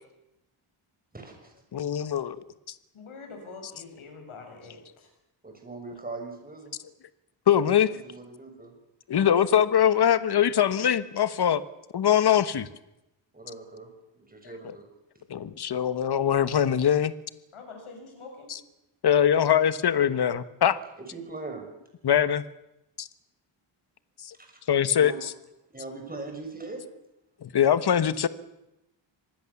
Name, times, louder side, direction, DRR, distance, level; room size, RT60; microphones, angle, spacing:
voice 1, 1.1-1.5 5.4-6.7 7.9-8.7 13.3-13.9 14.2-14.8 21.1-21.6 25.0-25.2 25.7-26.8, right 3 dB, 20° right, 4 dB, 6.5 m, -40 dB
voice 2, 1.7-2.4 7.5-7.9 9.1-11.6 11.9-12.7 14.6-14.8 15.3-17.1 18.5-18.6 19.0-20.8 22.0-22.4 23.0-23.1 24.2-24.3 24.7-25.3 27.4-28.3, left 9 dB, 50° left, 14 dB, 1.2 m, -22 dB
voice 3, 2.9-5.1 17.5-18.5, left 4 dB, 80° left, 3 dB, 7.5 m, -45 dB
25.5 x 19.5 x 7.1 m, 0.90 s
wide cardioid pair, 115°, 49 cm